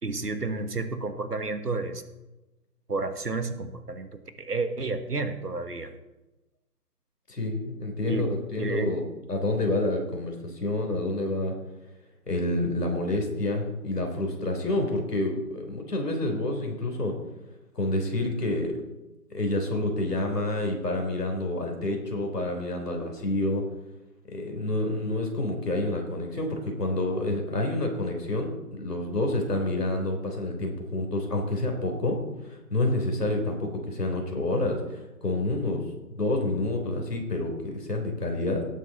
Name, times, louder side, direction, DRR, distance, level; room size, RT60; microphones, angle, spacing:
voice 1, 0.0-2.0 2.9-5.9 8.1-8.9, right 3 dB, 85° right, 9 dB, 1.6 m, -31 dB
voice 2, 7.3-9.0 9.3-11.5 12.3-17.2 17.7-18.7 19.3-23.7 24.3-35.8 36.1-38.7, left 2 dB, 80° left, 2 dB, 3.6 m, -28 dB
18.0 x 8.4 x 4.1 m, 1.0 s
figure-of-eight pair, 145°, 46 cm